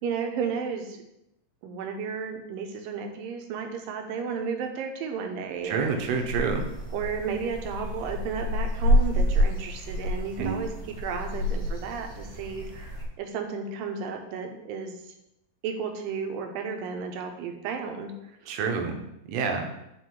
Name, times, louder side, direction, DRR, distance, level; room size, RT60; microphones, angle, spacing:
voice 1, 0.0-1.0 1.6-5.9 6.9-14.9 15.6-18.1 18.4-18.6, right 6 dB, 85° right, 4 dB, 2.6 m, -33 dB
voice 2, 5.6-6.7 10.4-10.6 18.5-19.0 19.3-19.7, right 5 dB, 70° right, 4 dB, 1.8 m, -28 dB
sound 1, 5.8-13.0, equal, 65° left, 3.8 m, -28 dB
9.4 x 3.7 x 4.7 m, 0.84 s
omnidirectional pair, 3.9 m